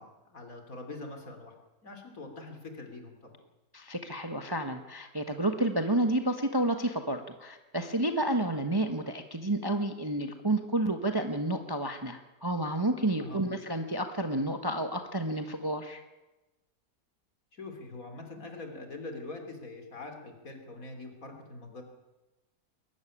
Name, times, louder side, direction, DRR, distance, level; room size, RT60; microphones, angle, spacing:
voice 1, 0.0-1.5 1.8-3.4 13.2-13.4 17.5-21.8, left 2 dB, 50° left, 4 dB, 3.6 m, -43 dB
voice 2, 3.7-16.0, right 1 dB, 15° right, 6 dB, 1.2 m, -30 dB
22.0 x 13.5 x 10.0 m, 1.1 s
omnidirectional pair, 1.9 m